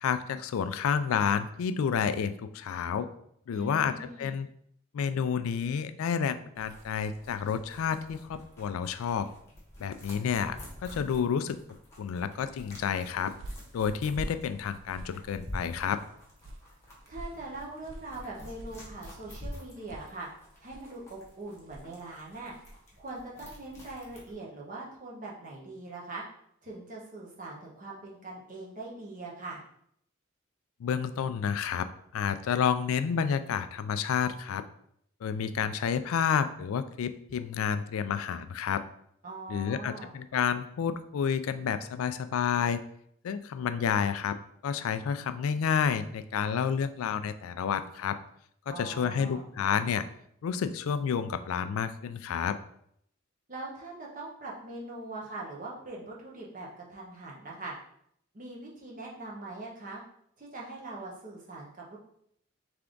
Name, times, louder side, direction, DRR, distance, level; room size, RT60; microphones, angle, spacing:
voice 1, 0.0-3.1 3.5-4.5 4.9-9.3 9.8-10.6 10.8-11.6 12.0-13.3 13.7-16.0 30.8-31.9 32.1-34.6 35.2-38.8 39.5-42.8 43.2-44.4 44.6-48.2 48.7-50.0 50.4-52.6, left 7 dB, 85° left, 11 dB, 0.3 m, -30 dB
voice 2, 3.5-4.4 17.1-20.3 20.6-22.5 23.0-26.2 26.6-29.6 39.2-40.1 48.6-49.4 53.5-57.7 58.3-60.0 60.4-62.0, right 2 dB, 40° right, -3 dB, 1.1 m, -42 dB
sound 1, 6.6-24.3, left 1 dB, 15° left, 1.1 m, -48 dB
sound 2, 12.9-22.9, right 1 dB, 65° right, 0.4 m, -48 dB
3.5 x 3.4 x 3.8 m, 0.69 s
head